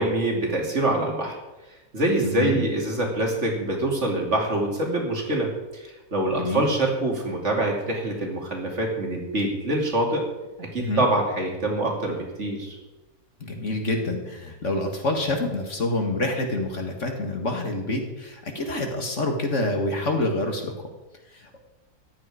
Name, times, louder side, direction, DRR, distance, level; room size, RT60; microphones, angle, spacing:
voice 1, 0.0-1.4 1.9-10.2 10.6-12.8, right 1 dB, 45° right, 0 dB, 2.8 m, -25 dB
voice 2, 2.2-2.6 6.4-6.7 10.8-11.1 13.4-20.7 21.3-21.6, left 2 dB, 50° left, 3 dB, 2.0 m, -27 dB
14.5 x 11.0 x 4.9 m, 1.1 s
omnidirectional pair, 1.7 m